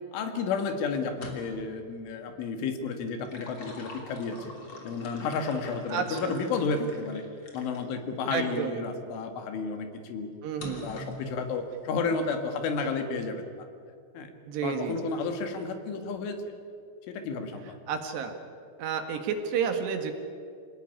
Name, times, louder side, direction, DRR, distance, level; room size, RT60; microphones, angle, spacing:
voice 1, 0.1-4.5 4.8-7.2 7.5-10.3 10.8-13.4 14.1-14.3 14.6-16.4 17.1-17.8, left 4 dB, 85° left, 6 dB, 4.5 m, -32 dB
sound 1, 1.1-1.7 3.0-7.9 8.5-8.6 10.6-11.3, left 1 dB, 30° left, 3.2 m, -44 dB
voice 2, 5.9-6.3 8.3-8.8 10.4-10.9 14.5-15.1 17.9-18.3 18.8-20.1, right 7 dB, 65° right, 5 dB, 3.7 m, -31 dB
27.0 x 17.5 x 9.9 m, 2.3 s
omnidirectional pair, 5.5 m